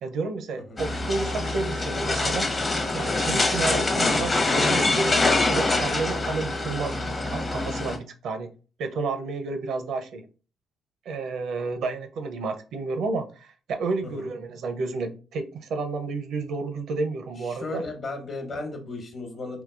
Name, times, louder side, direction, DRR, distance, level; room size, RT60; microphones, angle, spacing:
voice 1, 0.0-2.5 2.9-5.1 5.5-8.5 8.8-10.2 11.1-17.8, right 3 dB, 75° right, 7 dB, 0.5 m, -31 dB
sound 1, 0.8-8.0, left 2 dB, 30° left, 0.7 m, -24 dB
voice 2, 17.3-19.6, left 2 dB, 50° left, 4 dB, 1.1 m, -35 dB
3.7 x 2.6 x 2.4 m, 0.36 s
cardioid pair, 90°, 0 cm